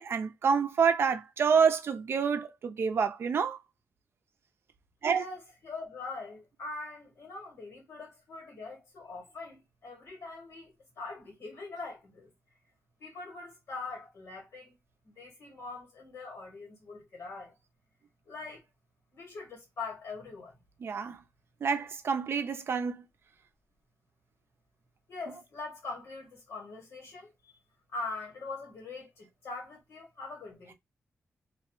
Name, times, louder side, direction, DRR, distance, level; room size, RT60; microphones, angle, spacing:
voice 1, 0.0-3.6 5.0-5.2 20.8-21.2 21.6-23.0, right 6 dB, 60° right, 0.4 m, -27 dB
voice 2, 5.1-12.3 13.0-14.7 15.0-17.5 18.2-18.6 19.1-20.6 25.1-27.5 27.9-30.7, left 3 dB, 80° left, 1.8 m, -42 dB
3.0 x 2.0 x 3.0 m
cardioid pair, 90°, 5 cm